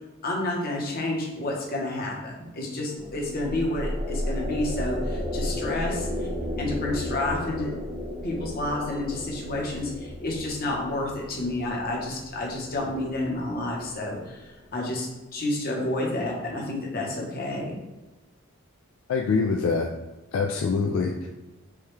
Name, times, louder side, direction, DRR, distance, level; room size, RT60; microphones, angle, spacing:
voice 1, 0.2-6.3 6.6-7.7 8.2-17.8, left 2 dB, 45° left, -1 dB, 0.9 m, -30 dB
sound 1, 3.0-14.4, left 1 dB, 10° right, 0.7 m, -34 dB
voice 2, 19.1-19.9 20.3-21.3, left 4 dB, 70° left, 2 dB, 0.3 m, -24 dB
4.8 x 2.2 x 3.2 m, 1.1 s
head